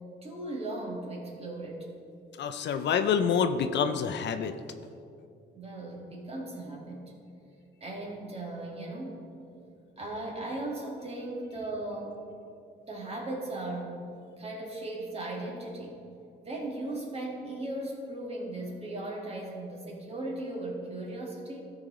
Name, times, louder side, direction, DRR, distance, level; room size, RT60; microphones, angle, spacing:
voice 1, 0.0-1.9 5.5-7.1 7.8-9.3 10.0-12.2 12.9-14.1 14.4-16.0 16.4-21.6, right 2 dB, 30° right, -2 dB, 2.0 m, -37 dB
voice 2, 2.3-4.5, left 7 dB, 60° left, 9 dB, 0.5 m, -27 dB
13.5 x 4.8 x 3.8 m, 2.6 s
cardioid pair, 90°, 20 cm